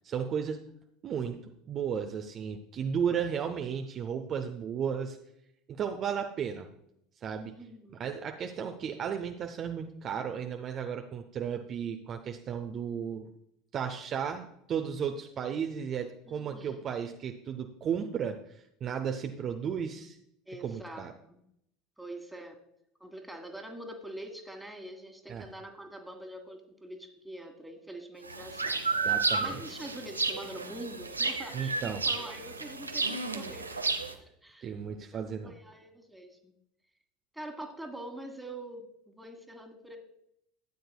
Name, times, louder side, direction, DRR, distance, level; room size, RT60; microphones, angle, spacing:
voice 1, 0.0-0.6 1.0-1.4 1.7-5.2 5.7-6.7 7.2-7.5 8.0-13.3 13.7-18.4 18.8-20.2 20.6-21.1 25.3-25.5 29.0-29.6 31.5-32.0 34.6-35.5, right 7 dB, 35° right, 5 dB, 0.6 m, -34 dB
voice 2, 7.4-8.0 16.3-16.8 20.5-21.4 22.0-22.6 23.0-28.8 29.3-33.9 34.2-34.7 35.0-36.5 37.3-40.0, right 1 dB, 5° right, 6 dB, 1.6 m, -45 dB
sound 1, 28.2-34.1, right 4 dB, 85° right, 0.7 m, -32 dB
13.0 x 9.3 x 2.2 m, 0.75 s
figure-of-eight pair, 70°, 0 cm